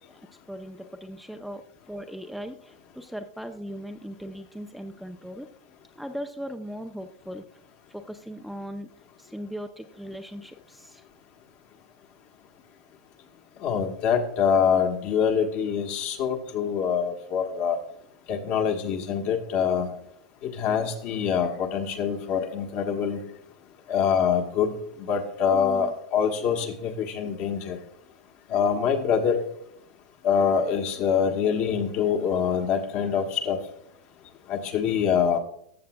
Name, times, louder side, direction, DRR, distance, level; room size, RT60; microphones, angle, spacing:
voice 1, 0.1-1.6 1.9-5.5 6.0-7.4 7.9-8.9 9.2-11.0 25.5-25.9 26.5-26.6, equal, ahead, 6 dB, 0.5 m, -38 dB
voice 2, 13.6-17.8 18.3-19.9 20.6-23.2 23.9-24.7 25.1-27.8 28.5-29.4 30.2-33.6 34.5-35.4, left 7 dB, 45° left, 4 dB, 1.3 m, -25 dB
14.0 x 7.5 x 2.2 m, 0.70 s
hypercardioid pair, 120°, 4 cm